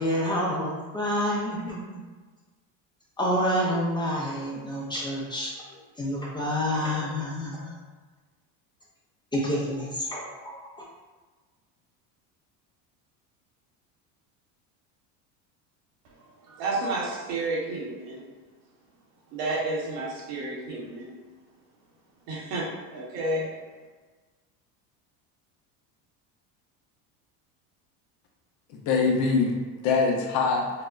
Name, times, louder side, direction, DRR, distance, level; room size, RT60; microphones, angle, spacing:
voice 1, 0.0-2.0 3.2-7.8 9.3-10.7, equal, 10° left, -5 dB, 0.5 m, -28 dB
voice 2, 16.6-18.2 19.3-21.1 22.3-23.5, right 2 dB, 65° right, -4 dB, 1.2 m, -31 dB
voice 3, 28.7-30.8, left 4 dB, 60° left, 1 dB, 0.7 m, -24 dB
5.3 x 2.1 x 2.5 m, 1.3 s
cardioid pair, 140°, 38 cm